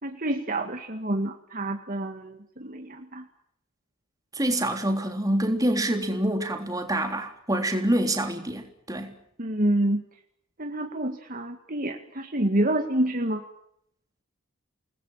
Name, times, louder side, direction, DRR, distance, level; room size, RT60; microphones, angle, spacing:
voice 1, 0.0-3.3 9.4-10.1 10.6-13.4, right 1 dB, 40° right, 2.0 m, -28 dB
voice 2, 4.3-9.1, right 1 dB, 15° right, 3.5 m, -26 dB
29.0 x 20.0 x 7.4 m
head